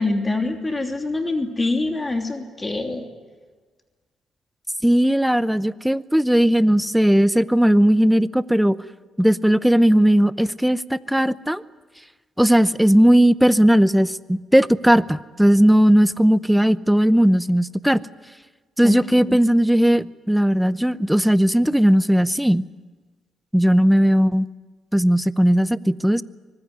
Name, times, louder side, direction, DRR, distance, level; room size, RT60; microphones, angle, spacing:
voice 1, 0.0-3.1 18.8-19.4, left 2 dB, 20° left, 4 dB, 3.0 m, -25 dB
voice 2, 4.8-8.8 9.2-11.6 12.4-18.0 18.8-22.7 23.5-24.5 24.9-26.2, equal, 5° right, 16 dB, 0.7 m, -17 dB
24.5 x 20.0 x 9.7 m, 1.4 s
cardioid pair, 90°, 0 cm